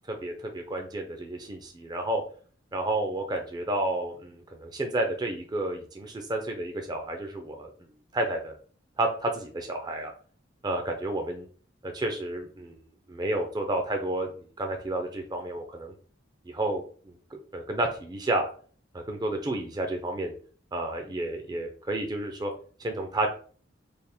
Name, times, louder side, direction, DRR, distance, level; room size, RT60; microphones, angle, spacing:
voice 1, 0.1-2.2 2.7-7.7 8.1-8.5 9.0-10.1 10.6-11.5 11.8-12.8 13.1-15.9 16.5-17.1 17.5-18.5 18.9-20.3 20.7-22.5 22.8-23.3, right 1 dB, 20° right, 4 dB, 0.4 m, -31 dB
3.4 x 2.0 x 4.2 m, 0.43 s
head